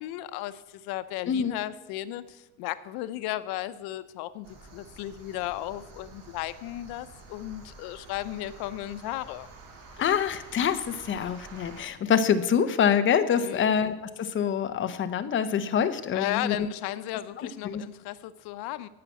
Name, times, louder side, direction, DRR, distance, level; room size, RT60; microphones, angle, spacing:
voice 1, 0.0-9.5 13.4-13.7 16.1-18.9, left 14 dB, 90° left, 13 dB, 0.8 m, -35 dB
voice 2, 1.3-1.6 10.0-16.7 17.4-17.8, left 8 dB, 35° left, 10 dB, 0.7 m, -26 dB
sound 1, 4.4-11.8, right 3 dB, 60° right, 3.5 m, -49 dB
13.5 x 5.8 x 8.4 m, 1.1 s
cardioid pair, 160°, 36 cm